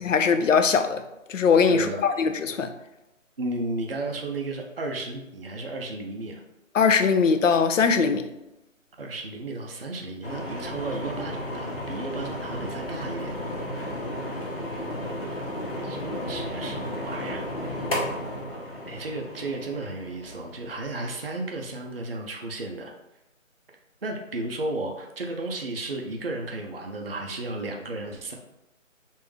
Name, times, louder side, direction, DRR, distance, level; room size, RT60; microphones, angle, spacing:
voice 1, 0.1-1.0 1.3-2.7 6.7-8.3, left 5 dB, 70° left, 0.5 m, -21 dB
voice 2, 1.7-2.0 3.4-6.4 9.0-13.4 15.8-17.5 18.9-22.9 24.0-28.4, right 2 dB, 50° right, 0.4 m, -33 dB
sound 1, 10.2-21.4, left 1 dB, 45° left, 0.9 m, -33 dB
3.5 x 2.6 x 3.1 m
figure-of-eight pair, 175°, 40 cm